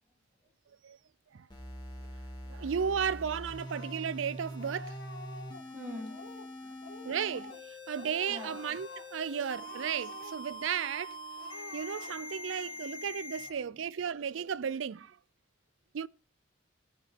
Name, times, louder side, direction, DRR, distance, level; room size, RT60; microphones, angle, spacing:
sound 1, 1.5-13.5, equal, 25° left, 3.0 m, -44 dB
voice 1, 2.5-5.0 7.0-11.2 11.7-15.2 15.9-16.1, right 7 dB, 90° right, 0.4 m, -34 dB
Speech, 3.3-4.2 4.6-5.7 6.0-6.5 6.8-7.7 7.9-9.1 9.5-10.6 10.9-11.1 11.4-12.4, left 3 dB, 70° left, 2.3 m, -49 dB
voice 2, 5.7-7.1 8.3-8.6 12.6-12.7 13.4-13.7, left 1 dB, 15° right, 4.0 m, -46 dB
Wind instrument woodwind instrument, 9.2-13.3, right 7 dB, 70° right, 1.5 m, -54 dB
18.0 x 6.6 x 4.3 m
head